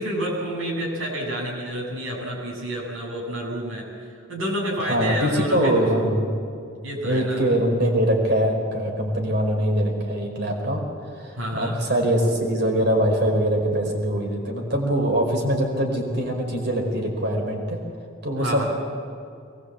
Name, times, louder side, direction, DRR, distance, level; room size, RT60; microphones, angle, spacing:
voice 1, 0.0-3.9 4.3-5.8 6.8-7.5 11.4-11.8 18.4-18.6, equal, 75° right, -1 dB, 7.5 m, -29 dB
voice 2, 4.9-6.3 7.0-10.8 11.1-17.8 18.2-18.6, equal, 50° right, 1 dB, 5.0 m, -23 dB
22.5 x 20.5 x 8.4 m, 2.4 s
head